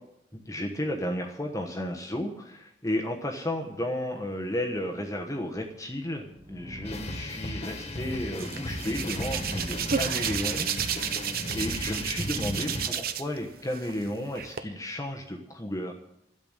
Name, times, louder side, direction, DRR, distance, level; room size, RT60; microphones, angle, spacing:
voice 1, 0.3-11.1 11.5-15.9, left 1 dB, 20° left, 1 dB, 1.2 m, -33 dB
sound 1, 5.7-12.1, equal, 25° right, 1.7 m, -43 dB
sound 2, 6.8-12.9, left 1 dB, 35° left, 1.8 m, -36 dB
Hands, 8.4-13.4 13.7-14.6, right 7 dB, 60° right, 1.0 m, -32 dB
12.5 x 8.0 x 8.8 m, 0.82 s
head